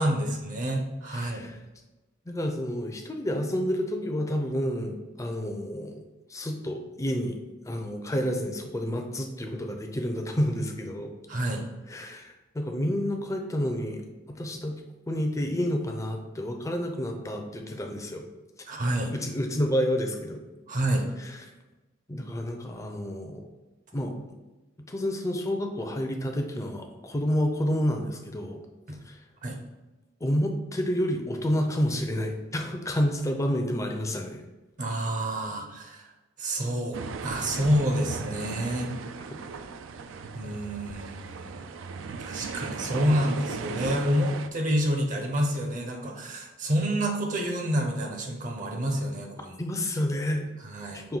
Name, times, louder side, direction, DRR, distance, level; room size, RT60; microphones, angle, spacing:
voice 1, 0.0-1.5 11.3-11.7 18.7-19.1 20.7-21.1 28.9-29.0 29.4-29.6 34.8-36.1 36.4-38.9 40.3-41.6 42.2-49.6 50.6-51.0, equal, 45° right, 2 dB, 0.7 m, -28 dB
voice 2, 1.1-1.6 2.3-6.0 6.3-7.4 7.6-11.1 11.9-14.0 14.3-14.8 15.1-18.3 19.1-20.4 21.2-21.3 22.1-23.5 23.9-24.1 24.9-28.6 29.1-29.2 30.2-34.4 49.6-50.5 50.9-51.2, equal, 15° left, 3 dB, 0.5 m, -29 dB
sound 1, 36.9-44.5, right 5 dB, 75° right, 0.3 m, -37 dB
5.4 x 2.6 x 3.8 m, 1.1 s
head